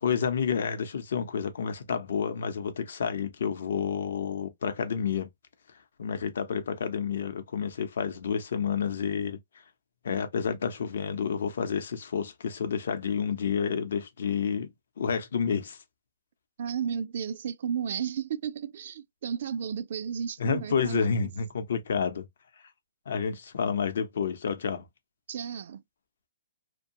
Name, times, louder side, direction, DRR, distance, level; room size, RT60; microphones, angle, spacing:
voice 1, 0.0-5.3 6.0-9.4 10.0-14.7 15.0-15.8 20.4-22.3 23.1-24.8, left 6 dB, 70° left, 0.7 m, -29 dB
voice 2, 16.6-21.3 25.3-25.8, right 7 dB, 55° right, 0.3 m, -33 dB
2.6 x 2.2 x 2.7 m
hypercardioid pair, 160°, 0 cm